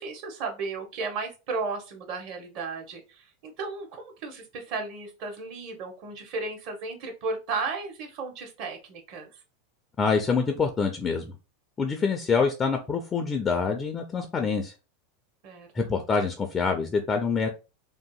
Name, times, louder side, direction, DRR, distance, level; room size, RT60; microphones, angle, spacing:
voice 1, 0.0-9.3 15.4-15.7, right 4 dB, 50° right, 4 dB, 0.9 m, -34 dB
voice 2, 10.0-11.3 11.8-14.7 15.7-17.5, left 5 dB, 25° left, 4 dB, 0.4 m, -26 dB
2.7 x 2.5 x 2.3 m, 0.30 s
hypercardioid pair, 90°, 0 cm